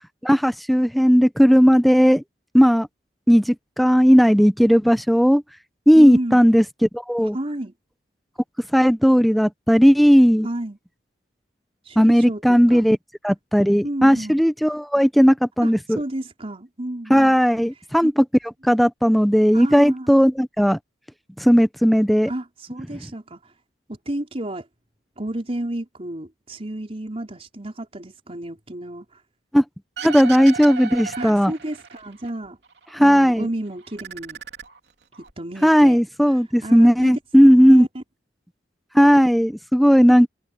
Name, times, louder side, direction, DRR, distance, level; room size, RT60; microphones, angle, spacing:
voice 1, 0.2-2.2 2.5-2.9 3.3-5.4 5.9-7.4 8.7-10.5 12.0-13.0 13.2-16.0 17.1-18.2 18.6-20.8 21.4-22.3 29.5-29.6 30.0-31.5 32.9-33.5 35.6-37.9 38.9-40.3, equal, ahead, 0.9 m, -16 dB
voice 2, 5.9-6.4 7.3-7.7 10.4-10.8 11.8-12.8 13.8-14.4 15.6-17.4 18.0-18.1 19.5-20.1 22.3-23.5 24.0-24.7 25.2-29.2 31.2-32.6 33.0-34.4 35.4-36.0 36.3-37.2 37.5-38.0, right 1 dB, 35° right, 4.8 m, -31 dB
sound 1, 30.0-32.3 32.6-33.5 33.8-35.3, right 6 dB, 70° right, 3.1 m, -36 dB
head